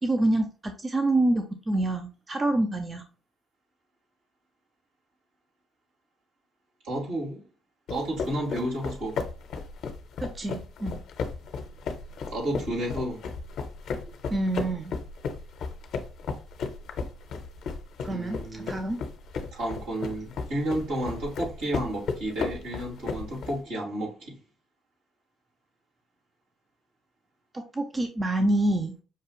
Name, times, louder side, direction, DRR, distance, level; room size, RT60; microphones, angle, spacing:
voice 1, 0.0-3.0 10.2-11.0 14.3-14.9 18.0-19.0 27.5-28.9, right 2 dB, 30° right, 0.7 m, -27 dB
voice 2, 6.8-7.4 7.9-9.2 12.3-13.2 18.1-18.8 19.5-24.4, right 1 dB, 75° right, 2.5 m, -31 dB
sound 1, 7.9-23.6, left 5 dB, 65° left, 0.9 m, -35 dB
5.9 x 2.4 x 3.1 m
hypercardioid pair, 50°, 0 cm